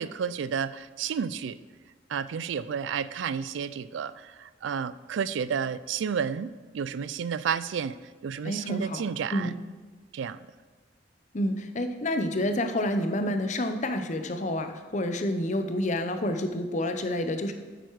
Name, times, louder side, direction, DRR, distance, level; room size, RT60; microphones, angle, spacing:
voice 1, 0.0-1.6 2.1-8.0 8.2-9.5 10.1-10.4, right 7 dB, 80° right, 16 dB, 0.3 m, -31 dB
voice 2, 8.4-9.0 9.3-9.6 11.3-17.5, left 1 dB, 40° left, 7 dB, 0.7 m, -29 dB
9.2 x 7.9 x 4.7 m, 1.4 s
head